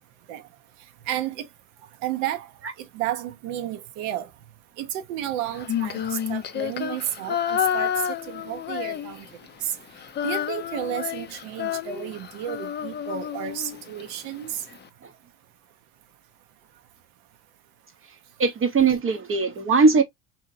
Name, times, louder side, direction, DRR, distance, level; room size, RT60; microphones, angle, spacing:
voice 1, 1.0-1.5 2.0-4.3 4.8-9.3 9.6-9.8 10.2-14.7, right 11 dB, 80° right, 0.7 m, -32 dB
Female singing, 5.5-9.5 9.7-14.0, left 9 dB, 30° left, 0.3 m, -29 dB
voice 2, 18.4-20.0, right 4 dB, 30° right, 0.6 m, -20 dB
2.8 x 2.6 x 2.4 m
supercardioid pair, 80°, 42 cm